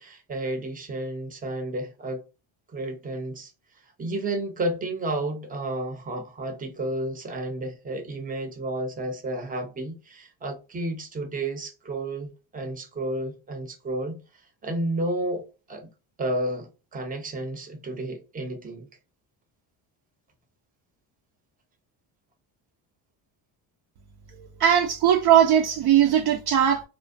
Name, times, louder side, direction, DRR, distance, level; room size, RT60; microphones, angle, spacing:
voice 1, 0.0-2.2 2.7-3.5 4.0-14.2 14.6-15.9 16.2-18.9, right 1 dB, 20° right, 0.6 m, -31 dB
voice 2, 24.6-26.8, right 10 dB, 55° right, 0.5 m, -19 dB
2.4 x 2.1 x 2.5 m
cardioid pair, 110°, 46 cm